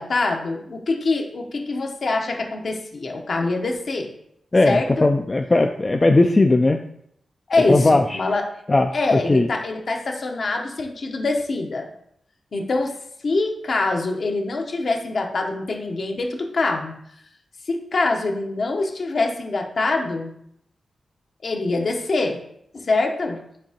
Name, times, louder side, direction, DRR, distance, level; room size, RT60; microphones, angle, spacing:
voice 1, 0.0-4.1 4.6-5.1 7.5-8.4 8.9-11.9 12.5-12.9 13.2-16.9 17.7-20.3 21.4-22.4 22.7-23.4, left 3 dB, 60° left, 2 dB, 0.8 m, -24 dB
voice 2, 4.5-6.8 7.7-8.2 8.7-9.5, left 2 dB, 30° left, 4 dB, 0.3 m, -18 dB
5.1 x 3.6 x 2.8 m, 0.72 s
cardioid pair, 55°, 0 cm